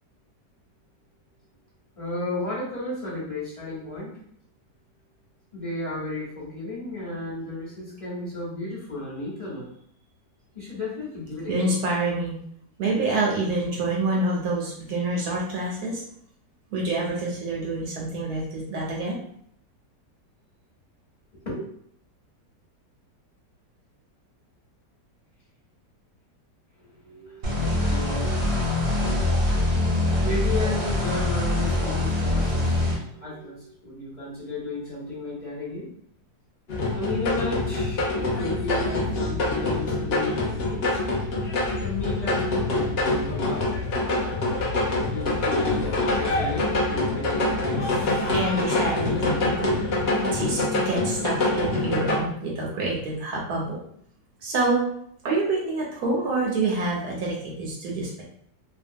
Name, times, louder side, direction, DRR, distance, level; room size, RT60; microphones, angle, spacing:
voice 1, 1.9-4.2 5.5-9.7 10.5-11.8 21.3-21.6 26.8-35.9 36.9-41.0 41.8-43.7 45.0-48.3 49.0-49.4 52.4-52.8, left 2 dB, 25° left, -9 dB, 0.8 m, -34 dB
voice 2, 11.5-12.3 12.8-16.0 16.7-19.2 48.3-49.8 50.2-53.8 54.4-54.8 55.2-58.2, right 2 dB, 70° right, -2 dB, 1.0 m, -27 dB
sound 1, 27.4-32.9, left 2 dB, 50° right, 0.7 m, -24 dB
sound 2, 36.7-52.2, left 2 dB, 75° left, 0.5 m, -25 dB
2.8 x 2.2 x 2.6 m, 0.68 s
omnidirectional pair, 1.9 m